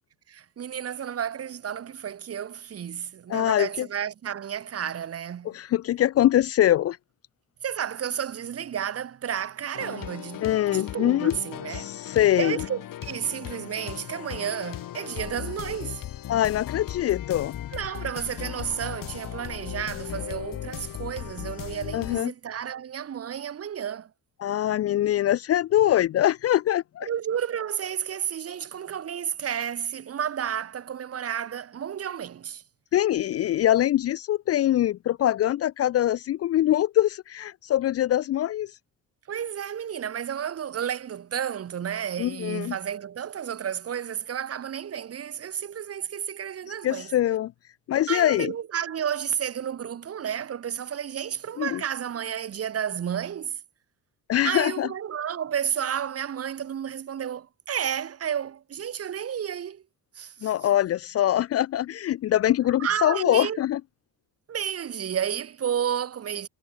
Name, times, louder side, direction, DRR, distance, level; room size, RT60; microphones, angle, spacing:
voice 1, 0.3-5.6 7.6-11.9 12.4-16.0 17.7-24.1 27.0-32.6 39.3-47.1 48.1-53.6 54.4-59.8 60.2-60.5 62.8-63.6 64.5-66.5, right 9 dB, 45° right, 2.5 m, -32 dB
voice 2, 3.3-3.9 5.5-7.0 10.4-11.3 11.7-12.6 16.3-17.6 21.9-22.3 24.4-27.1 32.9-38.7 42.2-42.7 46.8-47.5 47.9-48.5 51.6-51.8 54.3-54.9 60.4-63.8, left 12 dB, 45° left, 0.4 m, -23 dB
sound 1, 9.7-22.2, left 12 dB, 70° left, 7.5 m, -37 dB
cardioid pair, 160°, 34 cm